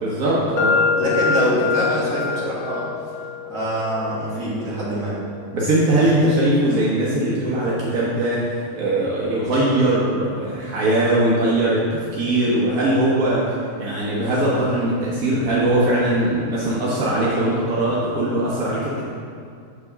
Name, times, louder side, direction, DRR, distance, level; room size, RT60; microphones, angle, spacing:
voice 1, 0.0-0.8 5.5-19.0, right 1 dB, 90° right, -6 dB, 1.4 m, -20 dB
sound 1, 0.6-8.4, left 6 dB, 85° left, 1.1 m, -27 dB
voice 2, 1.0-2.9 3.5-5.2, right 1 dB, 65° right, -8 dB, 2.2 m, -24 dB
6.8 x 5.9 x 3.5 m, 2.3 s
omnidirectional pair, 1.4 m